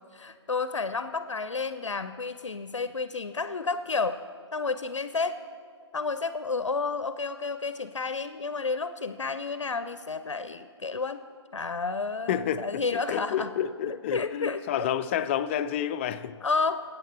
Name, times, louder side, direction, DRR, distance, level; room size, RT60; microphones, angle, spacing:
voice 1, 0.1-4.2 4.5-5.4 5.9-11.2 11.5-13.5 13.9-14.9 16.4-16.8, left 4 dB, 90° left, 12 dB, 0.5 m, -31 dB
voice 2, 12.3-16.4, left 9 dB, 25° left, 11 dB, 0.4 m, -30 dB
23.5 x 8.4 x 3.3 m, 2.2 s
figure-of-eight pair, 135°, 15 cm